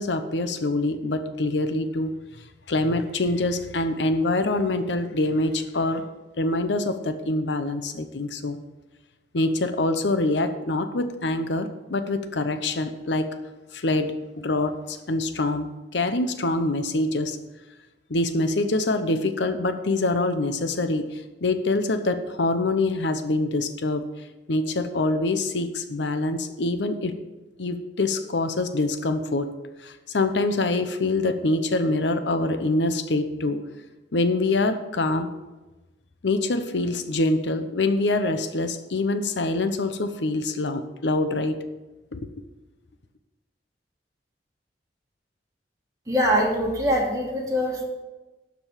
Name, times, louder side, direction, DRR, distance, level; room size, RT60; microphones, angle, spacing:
voice 1, 0.0-2.1 2.7-6.1 6.4-8.6 9.3-13.3 13.7-17.4 18.1-24.1 24.5-27.1 27.6-29.5 29.8-33.6 34.1-35.3 36.2-41.6 42.1-42.3, left 2 dB, 90° left, 9 dB, 0.8 m, -25 dB
voice 2, 46.1-47.8, equal, 20° right, -3 dB, 2.7 m, -23 dB
12.0 x 5.2 x 7.4 m, 1.1 s
head